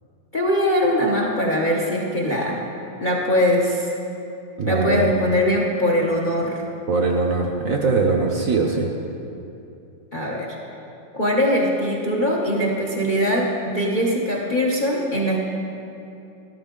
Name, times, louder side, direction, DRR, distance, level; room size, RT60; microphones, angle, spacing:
voice 1, 0.3-2.6 3.0-3.9 4.6-6.6 10.1-10.6 11.1-15.4, equal, 35° left, -2 dB, 0.8 m, -21 dB
voice 2, 4.6-5.1 6.9-8.9, right 3 dB, 55° right, 1 dB, 1.0 m, -21 dB
13.0 x 12.5 x 3.7 m, 2.8 s
omnidirectional pair, 2.1 m